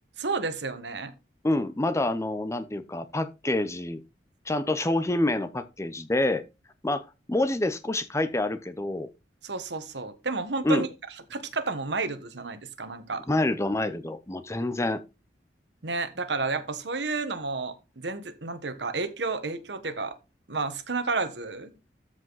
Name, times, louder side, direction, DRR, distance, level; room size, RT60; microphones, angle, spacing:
voice 1, 0.2-1.1 9.4-10.9 11.3-13.3 15.8-20.1 20.5-21.7, right 3 dB, 70° right, 1.3 m, -31 dB
voice 2, 1.4-4.0 4.5-6.4 6.8-9.1 10.6-10.9 13.3-15.0, left 2 dB, 15° left, 0.6 m, -27 dB
13.5 x 5.0 x 4.0 m
head